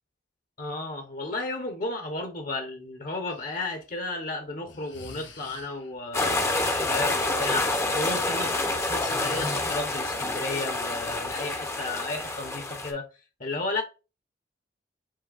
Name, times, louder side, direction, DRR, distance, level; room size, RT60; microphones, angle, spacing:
voice 1, 0.6-8.5 8.9-13.1 13.4-13.8, left 2 dB, 45° left, 0.9 m, -33 dB
Breathing, 3.3-3.5 4.7-6.0 7.6-10.3, left 3 dB, 80° left, 0.9 m, -44 dB
sound 1, 6.1-12.9, left 2 dB, 15° left, 0.6 m, -28 dB
7.5 x 2.7 x 2.4 m
head